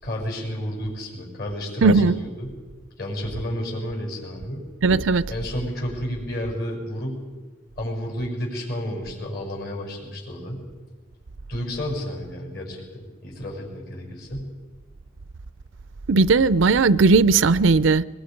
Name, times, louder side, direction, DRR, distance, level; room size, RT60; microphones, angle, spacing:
voice 1, 0.0-2.5 3.0-4.6 5.3-7.2 7.8-10.7 11.5-14.5, equal, 50° left, 6.5 m, -31 dB
voice 2, 1.8-2.1 4.8-5.2 16.1-18.0, right 4 dB, 75° right, 0.5 m, -17 dB
23.0 x 22.5 x 5.2 m
head